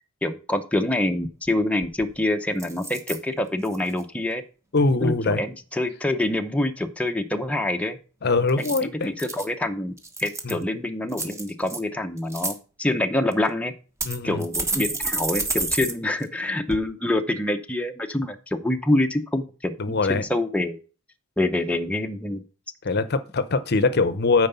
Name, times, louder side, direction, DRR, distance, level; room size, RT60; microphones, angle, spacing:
voice 1, 0.2-4.4 5.0-8.0 8.6-9.9 10.2-13.7 14.2-20.8 21.4-22.4, left 1 dB, 5° left, 0.7 m, -26 dB
sound 1, 1.5-1.6 1.8-2.2 2.6-3.2 3.6-4.0 8.5-9.5 10.0-10.6 11.1-11.8 12.2-12.5 13.3-13.4 14.0-15.9 16.2-16.3 16.7-16.8, right 3 dB, 15° right, 1.2 m, -29 dB
voice 2, 4.7-5.4 8.2-9.1 10.4-10.6 14.0-14.4 19.8-20.2 22.8-24.5, left 3 dB, 50° left, 0.7 m, -22 dB
9.2 x 4.8 x 6.8 m
head